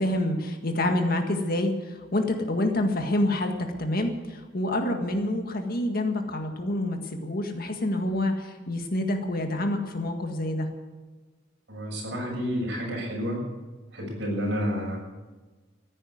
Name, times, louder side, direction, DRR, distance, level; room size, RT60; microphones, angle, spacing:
voice 1, 0.0-3.5 3.8-10.7, left 1 dB, 50° left, 4 dB, 1.8 m, -27 dB
voice 2, 11.7-13.4 13.9-15.0, equal, 60° right, -1 dB, 7.0 m, -30 dB
15.0 x 9.7 x 9.6 m, 1.3 s
head